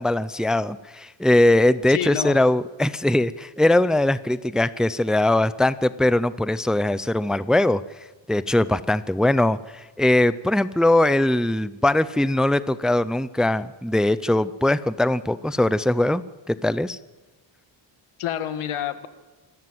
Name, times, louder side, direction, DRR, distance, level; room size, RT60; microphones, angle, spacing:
voice 1, 0.0-7.8 8.3-16.2 16.5-17.0, left 1 dB, ahead, 15 dB, 0.5 m, -21 dB
voice 2, 1.9-2.4 18.2-19.1, left 10 dB, 85° left, 10 dB, 1.7 m, -28 dB
26.0 x 13.5 x 7.8 m, 1.2 s
cardioid pair, 100°, 49 cm